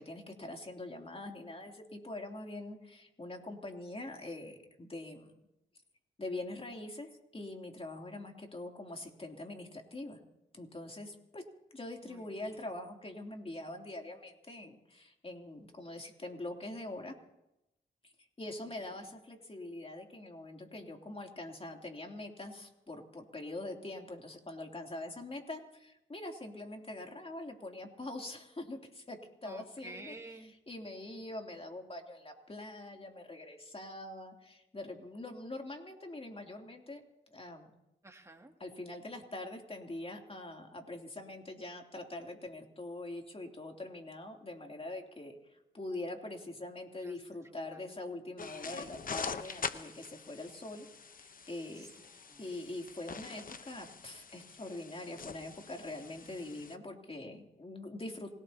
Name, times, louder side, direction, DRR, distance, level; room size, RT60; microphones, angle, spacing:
voice 1, 0.0-5.3 6.2-10.2 10.5-11.4 11.7-17.2 18.0-18.1 18.4-30.1 30.7-37.0 37.3-37.7 38.6-50.9 51.2-51.9 52.4-58.4, left 2 dB, 30° left, 2 dB, 3.1 m, -44 dB
voice 2, 12.0-12.6 18.4-19.1 29.4-30.5 38.0-38.5 46.9-47.2 47.4-47.9 51.7-52.5, right 2 dB, 15° right, 2 dB, 2.4 m, -52 dB
sound 1, 48.4-56.8, left 5 dB, 45° left, 1.0 m, -44 dB
27.5 x 17.5 x 2.9 m, 0.91 s
cardioid pair, 60°, 20 cm